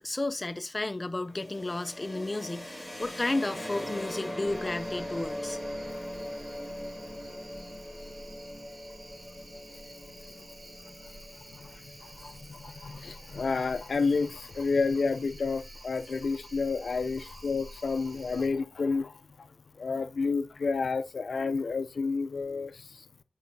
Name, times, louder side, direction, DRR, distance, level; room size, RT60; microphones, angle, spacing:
voice 1, 0.0-5.6, left 2 dB, 30° left, 0.5 m, -32 dB
sound 1, 1.4-13.0, left 1 dB, 5° left, 3.5 m, -41 dB
sound 2, 4.4-18.5, right 1 dB, 55° right, 2.0 m, -50 dB
voice 2, 12.2-19.5 19.8-23.0, left 4 dB, 80° left, 0.5 m, -30 dB
10.0 x 4.7 x 2.7 m
wide cardioid pair, 80°, 0 cm